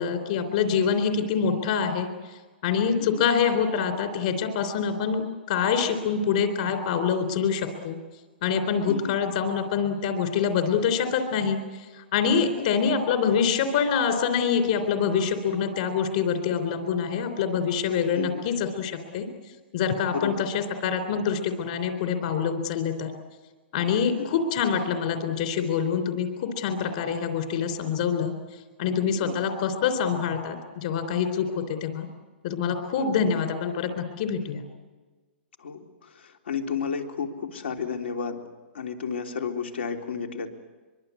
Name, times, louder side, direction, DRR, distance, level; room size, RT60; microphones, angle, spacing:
voice 1, 0.0-2.1 2.6-5.2 5.5-8.0 8.4-19.3 19.7-23.1 23.7-28.3 28.8-32.1 32.4-34.6, left 6 dB, 40° left, 6 dB, 3.6 m, -25 dB
voice 2, 8.9-9.2 12.3-12.7 18.2-18.5 20.1-20.5 24.2-24.4 29.2-29.5 33.0-33.1 35.6-38.4 38.7-40.5, left 6 dB, 80° left, 4 dB, 3.5 m, -32 dB
24.0 x 24.0 x 8.4 m, 1.3 s
hypercardioid pair, 175°, 6 cm